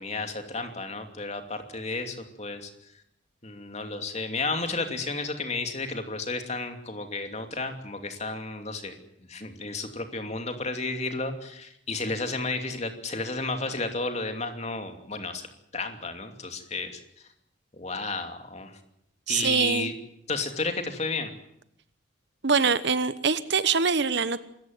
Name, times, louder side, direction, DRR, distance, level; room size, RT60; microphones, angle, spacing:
voice 1, 0.0-2.7 3.4-8.9 9.3-15.5 15.7-17.0 17.7-18.8 19.3-19.9 20.3-21.3, left 3 dB, 35° left, 6 dB, 2.8 m, -32 dB
voice 2, 19.3-19.9 22.4-24.4, right 5 dB, 60° right, 15 dB, 1.0 m, -24 dB
25.0 x 14.5 x 9.3 m, 0.76 s
head